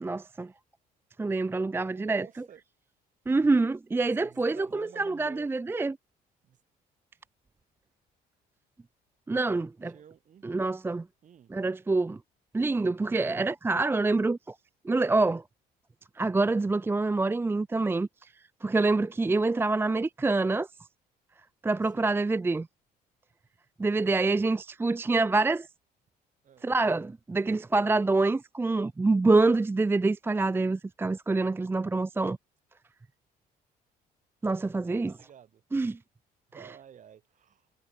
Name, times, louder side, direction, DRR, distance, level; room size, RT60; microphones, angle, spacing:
voice 1, 0.0-0.5 1.2-2.5 3.3-6.0 9.3-9.9 10.4-11.1 11.5-12.2 12.5-14.5 14.8-15.4 16.2-18.1 18.6-20.7 21.6-22.7 23.8-25.7 26.6-32.4 34.4-35.1 35.7-36.0, right 3 dB, 15° right, 0.5 m, -26 dB
voice 2, 1.9-2.6 4.2-5.5 6.4-6.6 9.8-10.5 11.2-11.5 21.9-22.2 26.4-26.7 34.8-35.6 36.5-37.7, right 9 dB, 50° right, 4.7 m, -51 dB
cardioid pair, 110°, 17 cm